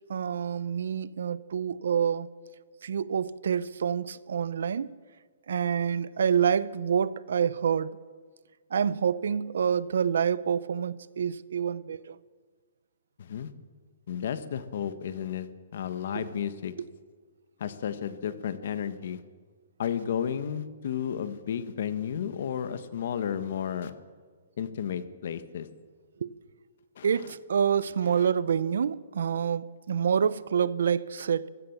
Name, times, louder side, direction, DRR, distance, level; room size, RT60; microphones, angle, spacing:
voice 1, 0.1-2.3 2.8-4.9 5.5-8.0 8.7-12.2 16.1-16.3 26.2-26.3 27.0-31.5, right 7 dB, 70° right, 0.7 m, -27 dB
voice 2, 13.2-13.5 14.1-16.7 17.6-19.2 19.8-23.9 24.6-25.7 27.0-27.3 28.1-28.3, left 8 dB, 50° left, 1.4 m, -33 dB
23.0 x 16.0 x 7.3 m
hypercardioid pair, 175°, 0 cm